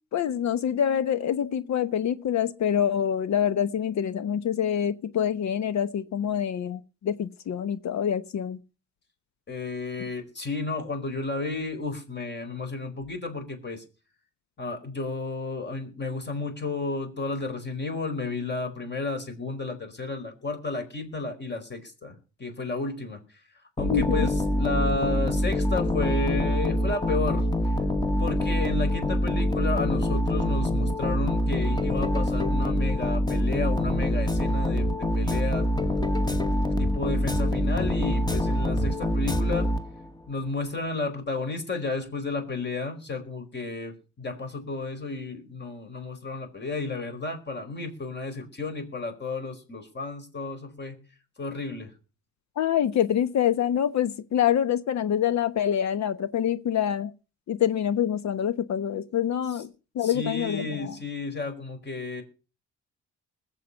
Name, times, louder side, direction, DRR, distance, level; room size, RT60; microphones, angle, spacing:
voice 1, 0.1-8.6 23.9-24.3 52.6-57.1 57.5-59.7 59.9-60.9, left 9 dB, 65° left, 1.0 m, -26 dB
voice 2, 9.5-13.8 14.6-23.2 23.8-27.5 28.2-35.7 36.3-39.7 40.3-51.0 51.4-51.9 59.5-59.6 60.0-62.2, left 3 dB, 35° left, 4.7 m, -32 dB
sound 1, 23.8-40.2, left 1 dB, 15° left, 1.4 m, -25 dB
21.0 x 7.6 x 5.6 m
cardioid pair, 90°, 30 cm